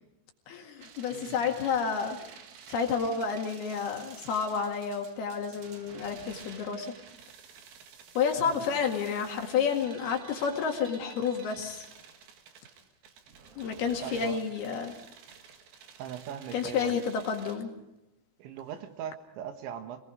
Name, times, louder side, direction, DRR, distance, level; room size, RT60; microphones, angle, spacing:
voice 1, 0.5-2.2 2.7-6.9 8.2-11.9 13.6-15.0 16.5-17.7, left 6 dB, 60° left, 3 dB, 3.7 m, -30 dB
sound 1, 0.8-17.5, right 6 dB, 60° right, 3.3 m, -51 dB
voice 2, 1.1-1.6 8.5-8.7 14.0-14.4 16.0-17.0 18.4-20.0, right 9 dB, 80° right, 7 dB, 3.7 m, -40 dB
26.0 x 19.5 x 5.1 m, 0.88 s
omnidirectional pair, 5.3 m